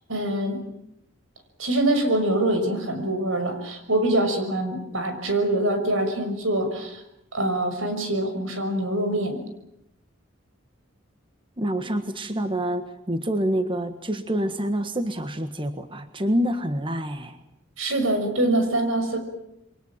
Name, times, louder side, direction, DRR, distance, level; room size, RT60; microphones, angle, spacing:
voice 1, 0.1-0.6 1.6-7.0 7.3-9.4 17.8-19.2, right 1 dB, 90° right, 7 dB, 6.1 m, -24 dB
voice 2, 11.6-17.4, equal, 25° right, 8 dB, 1.6 m, -27 dB
28.5 x 23.5 x 7.5 m, 0.79 s
head